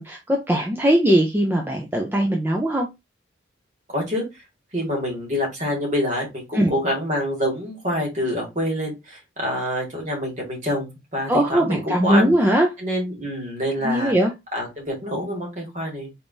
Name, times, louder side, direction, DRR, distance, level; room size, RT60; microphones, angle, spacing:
voice 1, 0.0-2.9 6.5-6.7 11.3-12.7 13.8-14.3, right 1 dB, 10° right, 0.6 m, -20 dB
voice 2, 3.9-4.2 4.7-12.3 12.8-14.1 14.5-16.1, equal, 40° right, 1.9 m, -26 dB
4.5 x 3.5 x 2.6 m
head